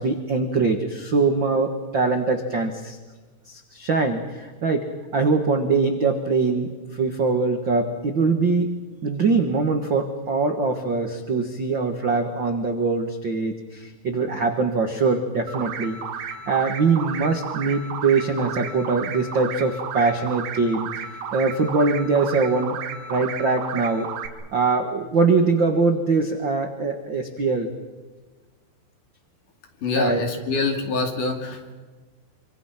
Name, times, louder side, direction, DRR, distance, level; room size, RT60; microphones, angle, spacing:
voice 1, 0.0-3.0 3.5-4.9 5.1-22.8 23.1-24.1 24.5-27.7 30.0-30.2, right 4 dB, 50° right, 5 dB, 1.4 m, -23 dB
sound 1, 15.5-24.3, right 7 dB, 70° right, 3.4 m, -33 dB
voice 2, 29.8-31.7, left 3 dB, 55° left, 4 dB, 4.0 m, -25 dB
26.5 x 26.5 x 5.8 m, 1.3 s
omnidirectional pair, 4.6 m